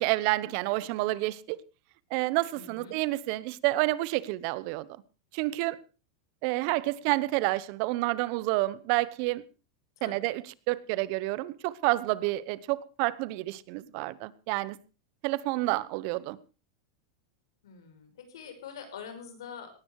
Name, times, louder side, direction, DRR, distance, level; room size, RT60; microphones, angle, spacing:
voice 1, 0.0-1.6 2.1-4.9 5.3-5.8 6.4-9.4 10.0-14.8 15.2-16.4, right 19 dB, 45° right, 0.9 m, -29 dB
voice 2, 2.5-2.9 10.0-10.3 17.6-19.7, left 7 dB, 90° left, 5.7 m, -45 dB
18.0 x 13.0 x 4.7 m
supercardioid pair, 155°, 2 cm